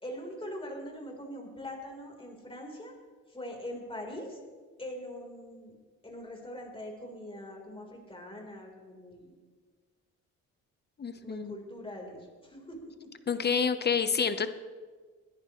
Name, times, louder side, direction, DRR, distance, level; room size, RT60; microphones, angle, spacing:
voice 1, 0.0-2.9 3.3-4.4 4.8-5.7 6.0-9.3 11.2-13.1, left 1 dB, 20° left, 0 dB, 4.0 m, -42 dB
voice 2, 11.0-11.5 13.3-14.5, left 6 dB, 35° left, 11 dB, 1.0 m, -28 dB
27.0 x 10.5 x 3.2 m, 1.5 s
cardioid pair, 90°, 30 cm